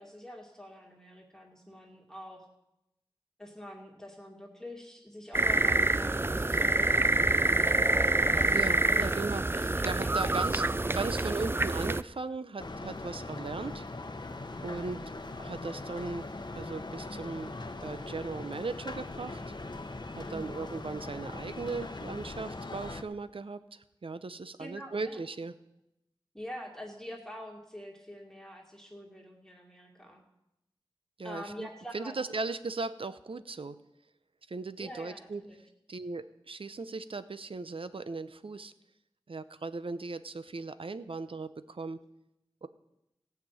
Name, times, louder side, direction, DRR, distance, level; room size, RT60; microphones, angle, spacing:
voice 1, 0.0-2.5 3.4-7.3 8.3-8.7 9.0-9.1 9.5-10.5 20.3-20.7 24.6-25.2 26.3-30.2 31.2-32.2 34.8-35.6, equal, 5° left, -1 dB, 2.5 m, -46 dB
sound 1, 5.3-12.0, right 2 dB, 25° right, 0.4 m, -26 dB
voice 2, 8.5-9.4 9.8-10.6 10.9-13.9 14.6-15.0 15.4-17.5 17.8-19.4 20.1-25.5 31.2-31.7 31.9-33.8 34.5-35.4 35.9-38.7 39.3-42.0 42.6-42.7, right 3 dB, 75° right, 13 dB, 0.7 m, -37 dB
sound 2, 12.6-23.0, left 2 dB, 55° left, 0.9 m, -41 dB
16.5 x 5.9 x 8.7 m, 0.88 s
wide cardioid pair, 55°, 9 cm